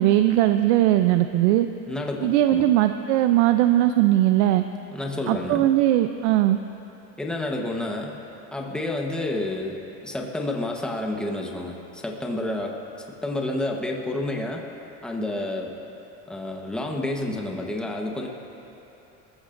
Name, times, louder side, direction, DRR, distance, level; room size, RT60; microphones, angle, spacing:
voice 1, 0.0-1.7 2.2-4.6 5.3-6.6, right 13 dB, 90° right, 8 dB, 0.6 m, -19 dB
voice 2, 1.9-2.7 4.9-5.7 7.2-8.1 8.5-14.6 15.0-15.7 16.3-18.3, left 2 dB, ahead, 0 dB, 1.1 m, -30 dB
27.5 x 14.5 x 2.6 m, 3.0 s
cardioid pair, 150°, 34 cm